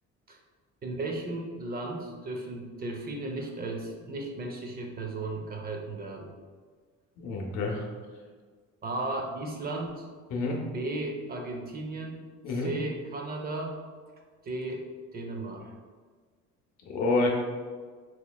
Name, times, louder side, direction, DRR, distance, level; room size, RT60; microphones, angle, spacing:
voice 1, 0.8-6.3 8.8-10.0 10.7-12.2 12.5-13.8 14.4-14.9 15.1-15.7, right 2 dB, 30° right, 1 dB, 0.5 m, -35 dB
voice 2, 7.2-7.8 10.3-10.6 12.4-12.7 16.9-17.3, left 3 dB, 75° left, 0 dB, 0.7 m, -28 dB
4.2 x 2.9 x 2.2 m, 1.5 s
cardioid pair, 120°, 29 cm